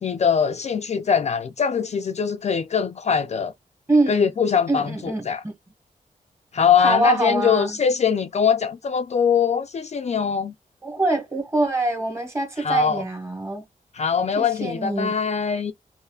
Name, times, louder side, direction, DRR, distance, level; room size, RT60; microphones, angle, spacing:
voice 1, 0.0-3.5 4.1-5.4 6.5-10.5 12.6-13.0 13.9-15.7, left 6 dB, 50° left, 0.4 m, -22 dB
voice 2, 3.9-4.3 4.7-5.2 6.8-7.8 10.8-13.6 14.4-15.1, right 2 dB, 20° right, 1.2 m, -24 dB
5.5 x 2.0 x 2.3 m
wide cardioid pair, 105°, 15 cm